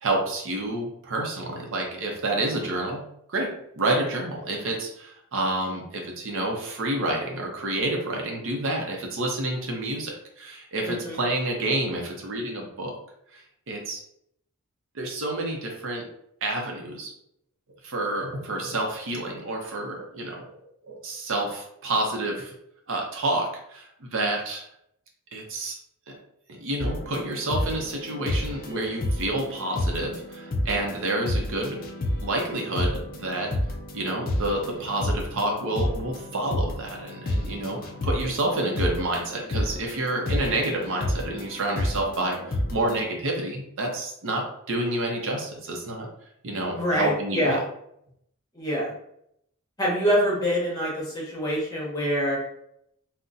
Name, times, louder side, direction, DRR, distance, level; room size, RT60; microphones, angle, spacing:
voice 1, 0.0-12.9 13.3-14.0 14.9-16.0 16.4-17.1 17.8-20.5 20.9-22.5 22.9-24.6 25.3-25.8 26.1-26.2 26.5-31.8 32.2-33.5 33.9-46.1 46.4-47.6, right 2 dB, 60° right, 1 dB, 0.6 m, -29 dB
voice 2, 10.8-11.2 46.7-47.6 48.5-48.9 49.8-52.4, equal, 20° left, -5 dB, 1.0 m, -25 dB
sound 1, 26.8-43.0, left 1 dB, 40° left, 0.4 m, -31 dB
3.9 x 2.1 x 2.5 m, 0.75 s
head